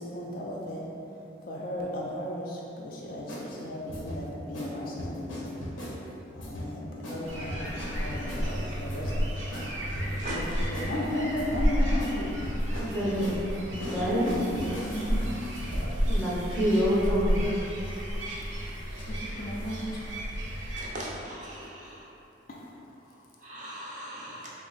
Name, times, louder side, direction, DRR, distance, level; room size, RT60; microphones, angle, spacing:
voice 1, 0.0-0.8 1.5-2.5 2.8-3.3 3.6-5.3 6.5-6.8 7.1-9.4 10.3-12.3 14.2-14.3 14.8-15.2 16.6-16.7 19.1-19.8, left 1 dB, 45° left, -3 dB, 0.4 m, -35 dB
sound 1, 3.3-3.5 3.9-4.2 4.5-4.7 5.0-6.0 6.4-6.7 7.0-7.2 7.5-8.4 8.8-9.2 9.5-9.7 9.9-10.9 11.4-11.7 12.0-12.1 12.4-15.1, left 1 dB, 85° left, 0.7 m, -38 dB
sound 2, 7.2-20.9, equal, 80° right, 0.7 m, -32 dB
voice 2, 12.8-13.3 13.9-14.3 16.0-17.4, equal, 5° left, -9 dB, 0.6 m, -26 dB
voice 3, 20.9-21.9 23.4-24.5, right 1 dB, 40° right, -6 dB, 0.5 m, -40 dB
3.3 x 2.0 x 3.9 m, 2.9 s
head